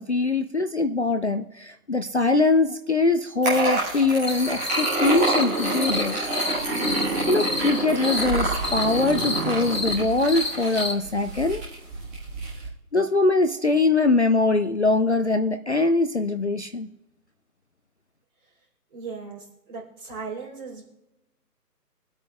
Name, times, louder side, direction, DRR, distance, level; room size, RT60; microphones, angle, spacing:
voice 1, 0.0-6.2 6.7-6.8 7.3-11.6 12.9-16.9, left 3 dB, 45° left, 8 dB, 0.4 m, -22 dB
sound 1, 3.4-12.7, right 2 dB, 10° right, 1.5 m, -27 dB
sound 2, 4.3-10.9, left 2 dB, 80° left, 1.7 m, -31 dB
voice 2, 18.9-20.8, right 5 dB, 30° right, -5 dB, 4.2 m, -37 dB
24.5 x 8.6 x 2.4 m, 0.95 s
figure-of-eight pair, 150°, 48 cm